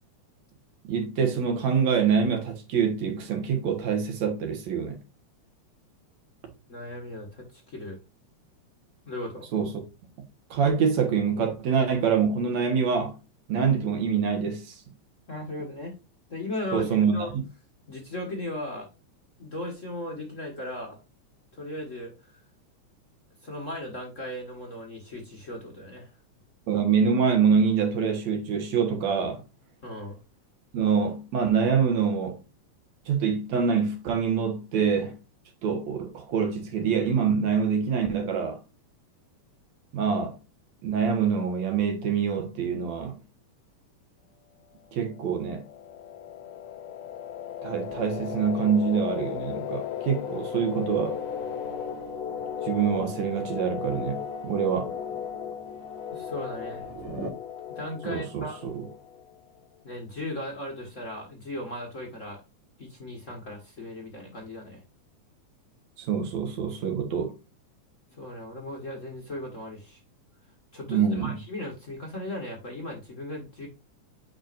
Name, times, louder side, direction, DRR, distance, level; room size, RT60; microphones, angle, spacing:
voice 1, 0.9-5.0 9.5-9.7 10.5-13.2 13.5-14.7 16.7-17.4 26.7-29.4 30.7-32.4 33.1-35.1 35.6-38.6 39.9-40.4 40.8-43.2 44.9-45.6 47.6-51.2 52.6-54.9 58.0-58.9 66.0-67.3 70.9-71.3, right 6 dB, 70° right, 2.5 m, -25 dB
voice 2, 6.7-8.0 9.1-9.5 15.3-15.9 16.3-17.3 17.9-18.9 19.4-21.0 21.6-22.4 23.4-26.1 29.8-30.2 56.1-56.9 57.7-58.6 59.8-62.4 62.8-64.8 68.2-70.0 70.7-73.7, left 1 dB, 45° left, 1.0 m, -37 dB
sound 1, 44.9-59.5, left 10 dB, 75° left, 1.7 m, -36 dB
sound 2, 47.8-57.3, right 2 dB, 50° right, 2.3 m, -44 dB
8.8 x 5.1 x 2.5 m
omnidirectional pair, 3.4 m